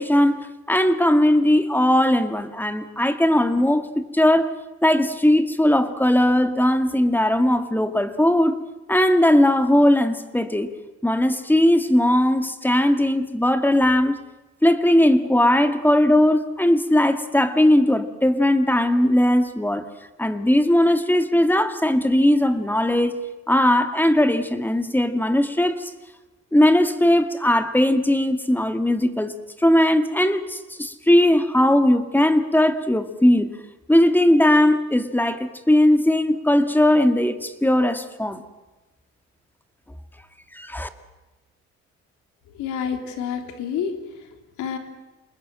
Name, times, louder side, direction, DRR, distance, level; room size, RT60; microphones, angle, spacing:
voice 1, 0.0-4.5 4.8-8.6 8.9-10.7 11.0-14.2 14.6-19.8 20.2-23.2 23.5-25.9 26.5-33.5 33.9-38.4 40.5-40.9, left 1 dB, 5° left, 8 dB, 2.1 m, -19 dB
voice 2, 42.5-44.3 44.6-44.8, left 7 dB, 90° left, 5 dB, 3.5 m, -29 dB
28.0 x 20.0 x 7.7 m, 1.1 s
cardioid pair, 90°, 29 cm